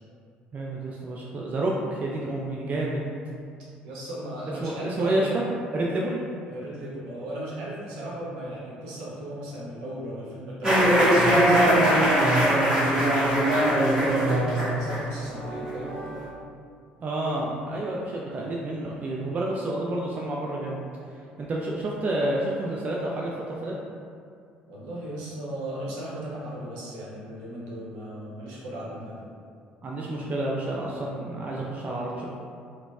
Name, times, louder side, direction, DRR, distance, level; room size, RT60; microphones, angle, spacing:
voice 1, 0.5-3.1 4.6-5.4 5.7-6.2 8.0-8.1 17.0-20.8 21.4-23.7 29.8-32.3, right 1 dB, 35° right, -3 dB, 0.3 m, -29 dB
voice 2, 3.8-5.4 6.5-16.0 20.9-21.0 24.7-29.2, right 1 dB, 70° right, -6 dB, 0.8 m, -36 dB
sound 1, 10.6-16.3, right 1 dB, 15° right, 1.3 m, -21 dB
3.8 x 2.0 x 2.3 m, 2.3 s
figure-of-eight pair, 55°, 5 cm